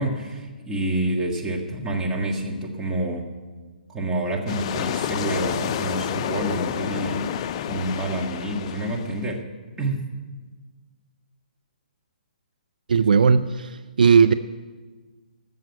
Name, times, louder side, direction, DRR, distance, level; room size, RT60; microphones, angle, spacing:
voice 1, 0.0-3.2 3.9-7.3 7.6-9.4 9.8-10.1, right 1 dB, 10° right, -2 dB, 1.8 m, -28 dB
sound 1, 4.5-9.3, left 10 dB, 35° left, 0.4 m, -29 dB
voice 2, 12.9-14.3, right 6 dB, 65° right, 12 dB, 0.5 m, -17 dB
13.5 x 7.5 x 8.9 m, 1.4 s
figure-of-eight pair, 130°, 5 cm